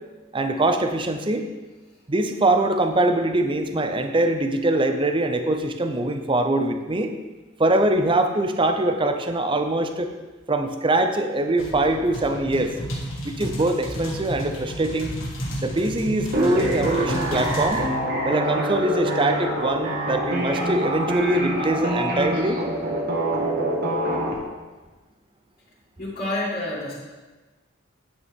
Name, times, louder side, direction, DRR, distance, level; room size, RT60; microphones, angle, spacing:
voice 1, 0.3-1.5 2.1-7.1 7.6-10.1 10.5-12.8 13.2-15.1 15.6-17.9 18.2-22.6, right 2 dB, 25° right, 6 dB, 0.6 m, -23 dB
sound 1, 11.6-17.8, equal, 80° left, 2.0 m, -32 dB
sound 2, 16.3-24.3, right 1 dB, 50° right, 1.6 m, -25 dB
voice 2, 26.0-26.9, left 1 dB, 40° left, -11 dB, 2.5 m, -28 dB
9.5 x 8.7 x 3.6 m, 1.2 s
head